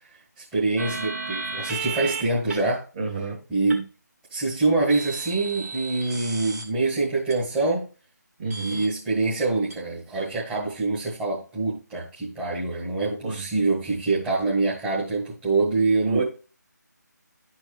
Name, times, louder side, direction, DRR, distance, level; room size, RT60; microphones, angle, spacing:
voice 1, 0.4-2.8 3.5-3.9 4.3-7.9 8.6-16.2, right 3 dB, 10° right, -10 dB, 1.8 m, -25 dB
sound 1, 0.8-2.2 2.5-2.6 3.7-3.8 4.9-6.6 7.3-7.4 8.5-8.9 9.7-9.8, right 4 dB, 55° right, 2.3 m, -33 dB
voice 2, 3.0-3.4 8.4-8.8 13.1-13.4 16.0-16.2, right 4 dB, 30° right, -1 dB, 2.6 m, -29 dB
12.0 x 4.6 x 3.4 m, 0.33 s
figure-of-eight pair, 160°, 10 cm